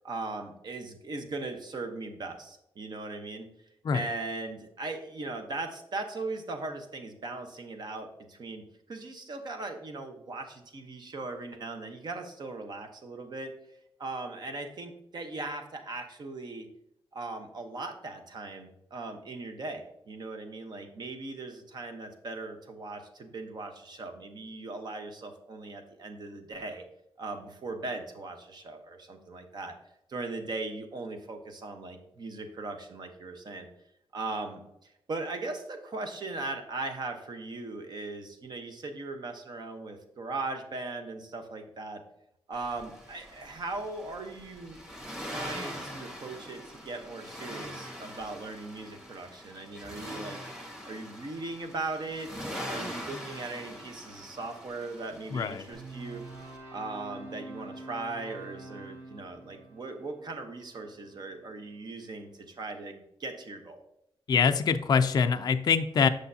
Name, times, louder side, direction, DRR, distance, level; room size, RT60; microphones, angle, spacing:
voice 1, 0.0-3.5 3.9-8.6 8.9-13.5 14.0-16.7 17.1-26.8 27.2-29.7 30.1-33.7 34.1-42.0 42.5-44.8 45.2-50.4 50.9-52.3 52.7-56.2 56.7-63.8, right 3 dB, 45° right, 5 dB, 1.0 m, -39 dB
Accelerating revving vroom, 42.5-56.6, equal, 5° right, 1.5 m, -43 dB
voice 2, 55.3-55.6 64.3-66.1, left 6 dB, 40° left, 8 dB, 0.4 m, -24 dB
sound 1, 55.7-61.9, right 2 dB, 25° right, 1.4 m, -47 dB
8.2 x 6.4 x 2.7 m, 0.81 s
wide cardioid pair, 170°, 10 cm